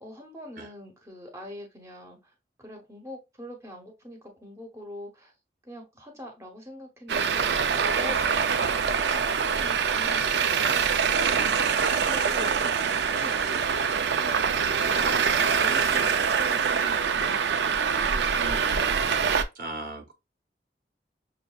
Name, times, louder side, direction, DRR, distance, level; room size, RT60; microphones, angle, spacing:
voice 1, 0.0-2.3 2.6-5.3 5.6-8.2 8.7-12.8 13.0-15.3 15.6-18.6, left 1 dB, 15° right, 0.9 m, -44 dB
Traffic noise roadway noise, 7.1-19.4, right 6 dB, 75° right, 0.4 m, -24 dB
voice 2, 8.4-8.7 11.5-11.7 12.5-12.8 13.5-13.7 14.9-16.1 18.3-19.3 19.5-20.1, right 2 dB, 50° right, 0.8 m, -39 dB
6.3 x 2.6 x 2.3 m
head